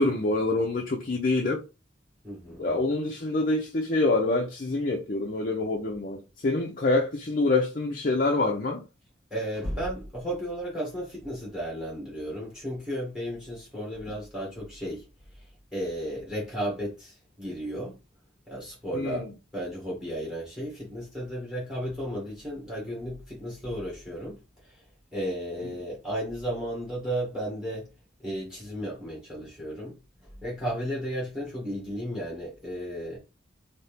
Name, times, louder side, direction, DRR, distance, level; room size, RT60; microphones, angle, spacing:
voice 1, 0.0-1.6 2.6-8.8 18.9-19.3, left 2 dB, 45° left, 0.6 m, -26 dB
voice 2, 2.2-2.7 9.3-15.1 15.7-18.0 18.5-24.7 25.1-27.9 28.2-29.9 30.4-33.2, equal, 5° right, 1.8 m, -34 dB
4.2 x 2.9 x 3.3 m
head